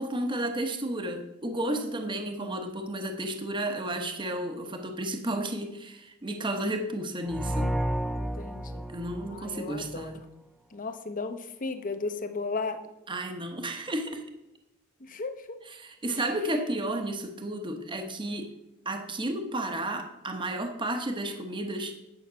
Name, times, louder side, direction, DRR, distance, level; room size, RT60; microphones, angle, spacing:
voice 1, 0.0-7.7 8.9-10.2 13.1-14.2 15.8-18.5 18.8-21.9, right 1 dB, 25° right, 5 dB, 1.0 m, -32 dB
voice 2, 1.8-2.7 8.1-8.9 9.3-10.1 10.7-12.8 15.0-15.6, left 3 dB, 40° left, 9 dB, 0.8 m, -36 dB
sound 1, 7.3-10.1, right 1 dB, ahead, 0.3 m, -32 dB
9.6 x 5.8 x 6.2 m, 0.91 s
head